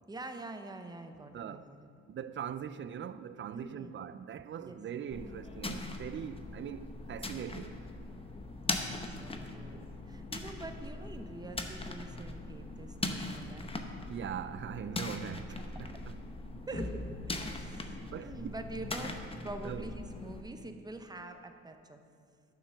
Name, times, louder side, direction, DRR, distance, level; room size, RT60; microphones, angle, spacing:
voice 1, 0.1-1.8 3.5-3.9 4.6-4.8 8.6-13.7 15.1-15.2 16.7-17.0 17.3-19.2 19.4-22.0, right 2 dB, 15° right, 0.8 m, -45 dB
voice 2, 1.3-1.7 2.1-7.8 14.1-16.2 16.8-16.9 18.0-18.5 19.6-19.9, right 8 dB, 40° right, 0.4 m, -41 dB
sound 1, 5.1-20.4, left 2 dB, 20° left, 0.8 m, -40 dB
9.7 x 6.6 x 6.0 m
cardioid pair, 90°, 30 cm